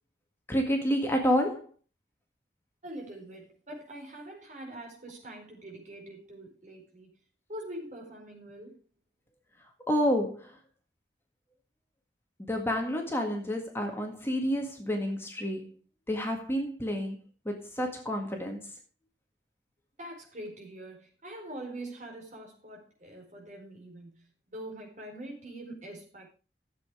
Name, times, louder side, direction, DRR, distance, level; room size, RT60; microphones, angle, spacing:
voice 1, 0.5-1.7 9.9-10.6 12.4-15.7 16.1-18.7, equal, 15° left, 1.8 m, -29 dB
voice 2, 2.8-7.1 7.5-8.8 20.0-26.3, right 1 dB, 45° right, 4.3 m, -44 dB
13.0 x 7.8 x 4.9 m
head